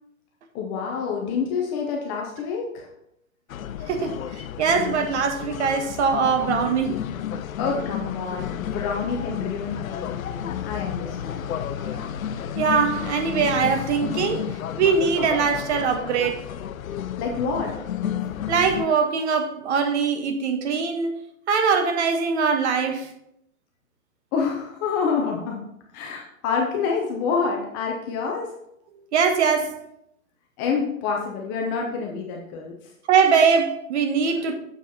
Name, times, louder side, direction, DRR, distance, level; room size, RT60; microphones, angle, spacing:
voice 1, 0.5-2.9 7.6-11.5 17.2-17.8 24.3-25.6 25.9-28.5 30.6-32.8, left 5 dB, 15° left, 0.5 m, -27 dB
sound 1, 3.5-18.9, left 9 dB, 80° left, 0.6 m, -32 dB
voice 2, 3.9-7.0 11.9-12.0 12.5-14.4 14.8-16.4 18.5-21.2 21.5-23.1 29.1-29.8 33.1-34.5, right 5 dB, 55° right, 1.3 m, -22 dB
6.9 x 6.0 x 4.1 m
hypercardioid pair, 140°, 41 cm